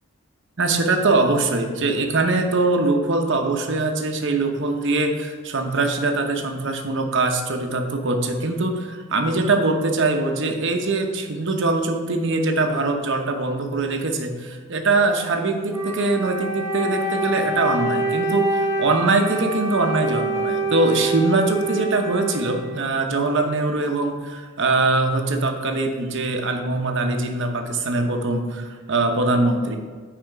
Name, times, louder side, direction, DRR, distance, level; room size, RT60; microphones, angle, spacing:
voice 1, 0.6-29.8, right 3 dB, 60° right, 4 dB, 0.9 m, -22 dB
Wind instrument woodwind instrument, 15.7-23.3, right 2 dB, 15° right, 0.6 m, -26 dB
9.4 x 4.3 x 4.7 m, 1.5 s
head